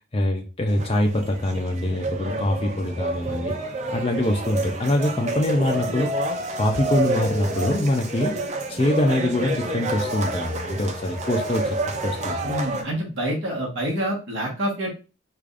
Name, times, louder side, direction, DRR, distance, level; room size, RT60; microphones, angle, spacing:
voice 1, 0.1-3.5 3.9-6.1 6.6-8.3 8.7-11.7 12.0-12.5, left 1 dB, 25° left, 2 dB, 0.4 m, -24 dB
sound 1, 0.7-12.8, right 2 dB, 35° right, 0.4 m, -29 dB
voice 2, 12.4-14.9, right 1 dB, 65° right, -3 dB, 1.3 m, -27 dB
4.8 x 2.5 x 2.4 m, 0.33 s
head